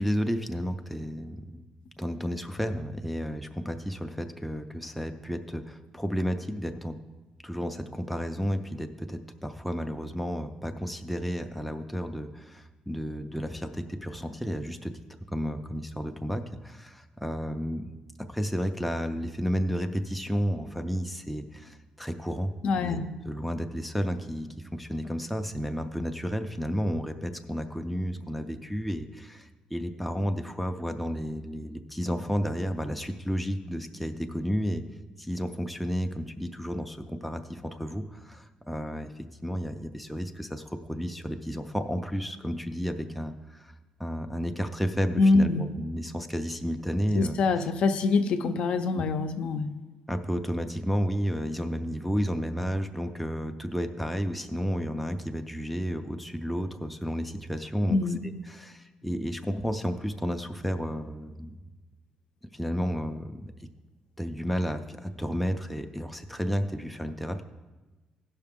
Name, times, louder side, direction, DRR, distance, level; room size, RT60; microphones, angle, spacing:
voice 1, 0.0-1.6 2.0-7.0 7.4-14.9 15.3-17.9 18.3-23.0 23.3-34.8 35.2-43.7 44.0-47.7 49.0-49.1 50.1-61.5 62.5-63.5 64.2-67.4, equal, ahead, 5 dB, 0.4 m, -32 dB
voice 2, 22.6-23.1 45.2-45.6 47.1-49.7 57.9-58.2, left 3 dB, 55° left, 9 dB, 0.5 m, -24 dB
16.5 x 5.7 x 3.5 m, 1.2 s
cardioid pair, 175°, 2 cm